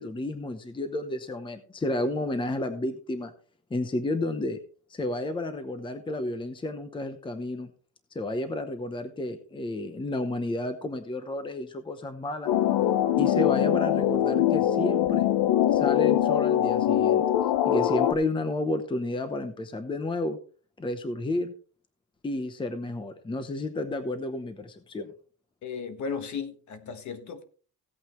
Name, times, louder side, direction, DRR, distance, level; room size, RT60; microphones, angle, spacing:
voice 1, 0.0-3.3 3.7-4.6 4.9-7.7 8.1-12.5 13.2-15.3 15.7-17.2 17.7-20.4 20.8-21.5 22.2-25.1, left 2 dB, 15° left, 0.8 m, -31 dB
sound 1, 12.5-18.1, left 11 dB, 90° left, 1.1 m, -23 dB
voice 2, 25.6-27.4, left 5 dB, 50° left, 1.4 m, -35 dB
16.0 x 8.8 x 3.2 m
cardioid pair, 165°, 38 cm